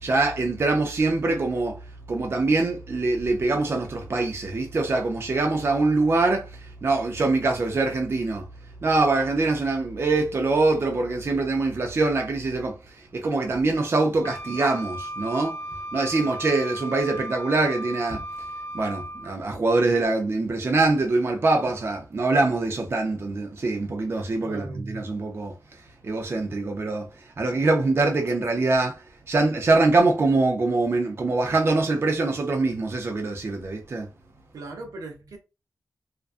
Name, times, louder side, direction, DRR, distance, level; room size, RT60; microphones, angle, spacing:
voice 1, 0.0-8.5 8.8-15.6 15.9-18.2 18.7-25.5 26.0-34.1, right 3 dB, 40° right, 0.5 m, -24 dB
Wind instrument woodwind instrument, 14.2-19.4, right 1 dB, 35° left, 0.7 m, -36 dB
voice 2, 24.4-24.9 34.5-35.4, right 3 dB, 80° right, 0.7 m, -39 dB
2.4 x 2.2 x 2.4 m
wide cardioid pair, 105°, 6 cm